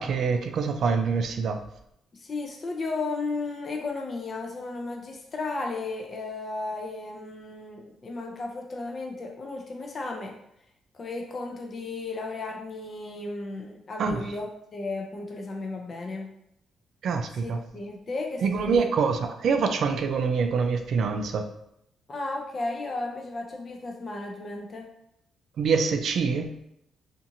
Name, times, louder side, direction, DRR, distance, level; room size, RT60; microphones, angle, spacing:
voice 1, 0.0-1.6 14.0-14.3 17.0-17.6 18.4-21.5 25.6-26.5, right 5 dB, 65° right, 6 dB, 0.3 m, -25 dB
voice 2, 2.1-10.3 10.9-16.3 17.4-18.9 22.1-24.9, left 3 dB, 40° left, 1 dB, 0.4 m, -34 dB
2.7 x 2.5 x 2.5 m, 0.78 s
cardioid pair, 90°, 0 cm